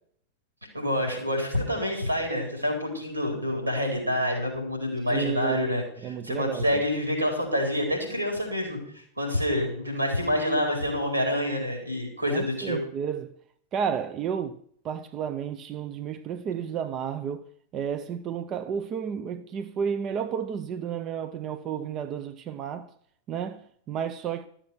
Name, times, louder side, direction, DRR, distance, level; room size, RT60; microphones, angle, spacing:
voice 1, 0.7-8.8 9.2-12.8, left 1 dB, 85° right, 4.5 m, -27 dB
voice 2, 5.1-6.8 12.3-13.3 13.7-14.6 14.8-17.4 17.7-22.9 23.3-24.5, right 7 dB, 35° right, 0.6 m, -32 dB
13.0 x 7.2 x 7.0 m
figure-of-eight pair, 90°, 0 cm